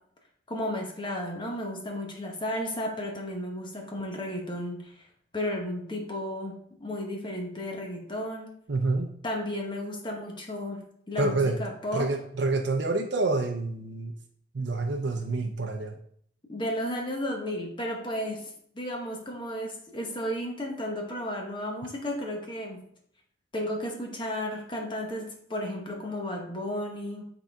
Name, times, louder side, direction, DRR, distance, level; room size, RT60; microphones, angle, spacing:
voice 1, 0.5-5.1 5.3-8.5 9.2-12.1 16.5-22.9 23.5-27.2, left 1 dB, 25° left, 0 dB, 1.1 m, -33 dB
voice 2, 8.7-9.1 11.2-11.6 11.9-14.1 14.5-16.0, right 3 dB, 70° right, 3 dB, 0.6 m, -27 dB
8.8 x 3.9 x 3.5 m, 0.66 s
head